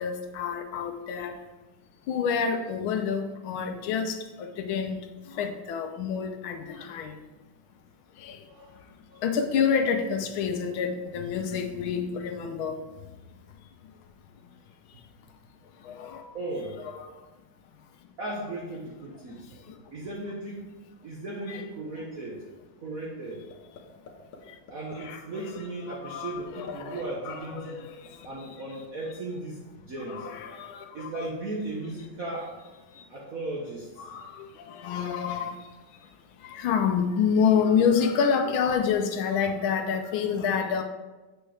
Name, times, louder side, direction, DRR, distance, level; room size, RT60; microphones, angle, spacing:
voice 1, 0.0-1.4 2.1-7.1 8.2-8.5 9.2-12.8 15.8-16.2 16.9-17.1 19.7-19.8 21.5-21.6 24.5-24.6 25.0-25.2 26.0-28.3 30.1-31.3 32.9-33.0 34.0-35.7 36.4-40.8, left 6 dB, 75° left, 6 dB, 1.5 m, -28 dB
voice 2, 8.5-8.8 9.1-9.2 16.3-16.8 18.2-19.5 19.9-20.7 21.0-22.4 22.8-23.4 24.7-27.8 28.2-30.3 30.9-32.5 33.1-34.1, right 2 dB, 50° right, -4 dB, 1.2 m, -36 dB
sound 1, 23.5-23.8 24.1-24.4 24.7-25.0 25.3-25.6 25.9-26.0 26.4-27.0 27.3-28.3, left 6 dB, 55° left, 0.9 m, -46 dB
7.3 x 6.3 x 3.3 m, 1.2 s
omnidirectional pair, 2.4 m